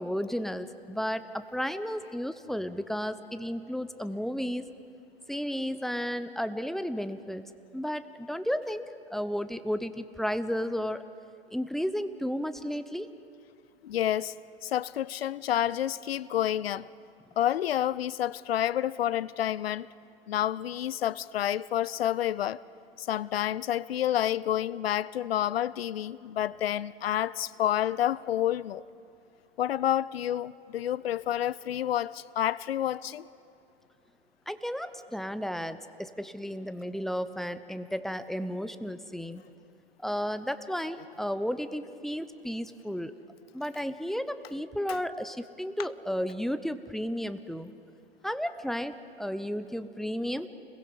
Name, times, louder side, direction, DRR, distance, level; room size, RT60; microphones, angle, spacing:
voice 1, 0.0-4.7 5.3-7.4 7.7-8.8 9.1-11.0 11.5-13.1 34.5-39.4 40.0-43.1 43.5-47.7 48.2-50.5, equal, ahead, 0.8 m, -33 dB
voice 2, 13.8-14.3 14.6-16.9 17.4-19.9 20.3-22.6 23.0-28.8 29.6-33.2 44.9-45.0 45.8-45.9, left 11 dB, 75° left, 0.6 m, -29 dB
29.5 x 21.5 x 5.6 m
hypercardioid pair, 100°, 30 cm